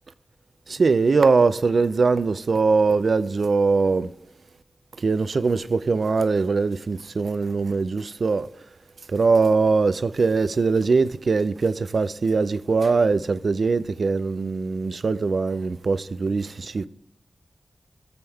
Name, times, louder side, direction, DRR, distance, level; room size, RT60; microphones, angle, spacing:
voice 1, 0.7-4.1 5.0-8.5 9.1-16.9, right 4 dB, 60° right, 0.3 m, -21 dB
17.0 x 7.0 x 2.3 m
wide cardioid pair, 90°, 0 cm